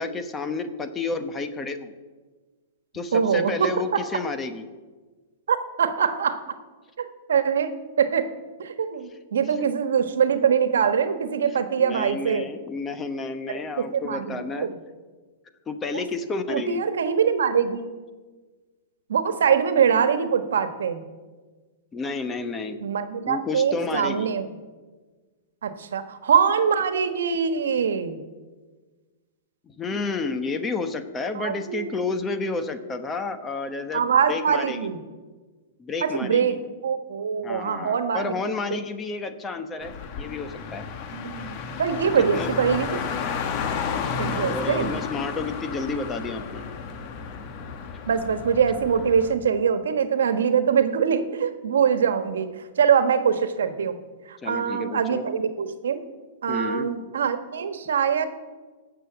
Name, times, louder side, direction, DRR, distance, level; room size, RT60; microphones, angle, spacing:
voice 1, 0.0-1.9 2.9-4.6 11.8-14.7 15.7-16.8 21.9-22.8 23.3-24.3 29.7-34.8 35.8-36.6 37.4-40.8 42.0-42.5 44.3-46.6 54.4-55.2 56.5-56.9, left 3 dB, 15° left, 9 dB, 0.9 m, -31 dB
voice 2, 3.1-4.0 5.5-6.4 7.0-7.7 8.0-8.2 8.6-12.5 13.5-14.7 15.9-16.1 16.5-17.9 19.1-21.0 22.8-24.5 25.6-28.2 31.3-31.9 33.9-35.0 36.0-36.6 36.8-38.3 38.7-38.8 41.1-43.0 44.2-45.0 48.1-54.0 54.3-56.0 56.4-58.2, right 7 dB, 90° right, 10 dB, 1.3 m, -23 dB
Car, 39.8-49.3, left 6 dB, 35° left, 1.3 m, -32 dB
17.0 x 6.9 x 7.9 m, 1.4 s
hypercardioid pair, 155°, 0 cm